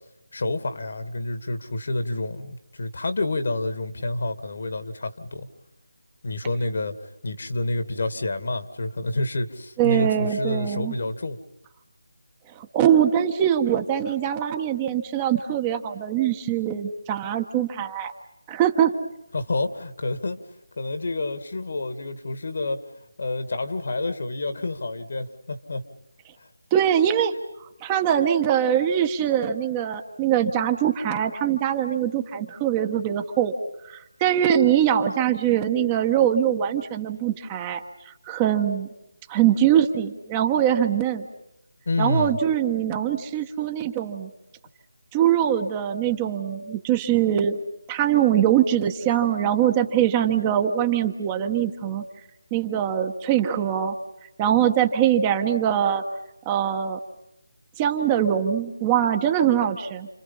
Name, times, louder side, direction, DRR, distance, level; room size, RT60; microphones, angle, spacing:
voice 1, 0.3-5.5 6.2-6.9 7.2-11.4 19.3-20.4 20.8-22.8 23.2-25.8 26.4-26.5 41.9-42.4, left 2 dB, 60° left, 8 dB, 2.4 m, -28 dB
voice 2, 9.8-10.9 12.6-18.1 18.5-18.9 26.7-27.3 27.6-33.5 33.9-38.9 39.3-41.3 42.0-44.3 45.1-47.6 47.9-52.0 52.5-54.0 54.4-56.0 56.4-57.0 57.8-60.1, right 10 dB, 15° right, 6 dB, 1.3 m, -22 dB
30.0 x 27.5 x 5.7 m, 0.86 s
figure-of-eight pair, 165°, 0 cm